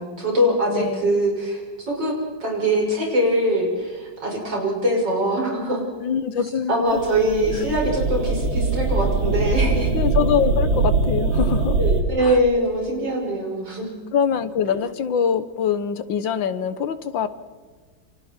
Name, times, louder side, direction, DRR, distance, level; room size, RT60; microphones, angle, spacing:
voice 1, 0.0-5.8 6.7-9.9 11.8-13.9, right 1 dB, 60° right, -1 dB, 6.6 m, -22 dB
voice 2, 0.7-1.1 6.0-7.0 9.9-11.8 12.2-12.4 14.1-17.3, left 7 dB, 70° left, 12 dB, 1.9 m, -24 dB
sound 1, 7.0-12.0, right 3 dB, 80° right, 3.1 m, -22 dB
28.5 x 26.0 x 4.5 m, 1.5 s
omnidirectional pair, 2.2 m